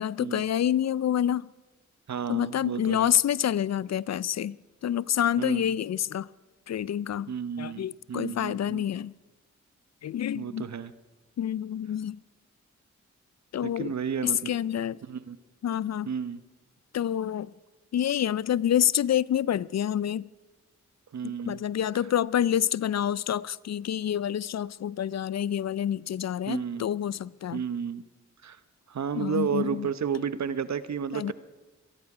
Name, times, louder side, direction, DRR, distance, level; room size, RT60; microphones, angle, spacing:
voice 1, 0.0-1.5 2.3-4.6 4.8-6.3 6.7-9.1 10.0-10.7 11.4-12.2 13.5-13.9 14.2-15.0 15.6-16.1 16.9-17.5 17.9-20.3 21.2-27.6 29.2-29.9 31.1-31.3, left 10 dB, 60° left, 0.5 m, -28 dB
voice 2, 2.1-3.1 5.4-5.6 7.3-8.8 10.4-10.9 13.6-14.4 15.1-15.4 16.1-16.4 21.1-21.6 26.5-26.9 27.5-28.0 28.4-28.6 28.9-31.3, right 7 dB, 65° right, 0.9 m, -32 dB
26.5 x 10.5 x 4.9 m
cardioid pair, 45°, 30 cm